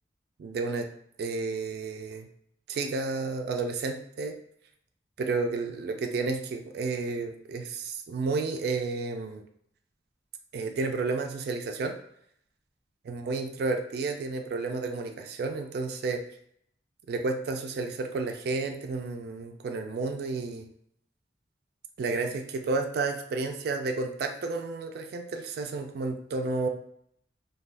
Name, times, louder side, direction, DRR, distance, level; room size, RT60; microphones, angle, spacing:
voice 1, 0.4-0.9 1.2-2.3 2.7-4.4 5.2-9.4 10.5-12.0 13.1-16.2 17.1-20.7 22.0-26.7, right 3 dB, 60° right, 5 dB, 0.3 m, -31 dB
2.5 x 2.2 x 3.3 m, 0.71 s
head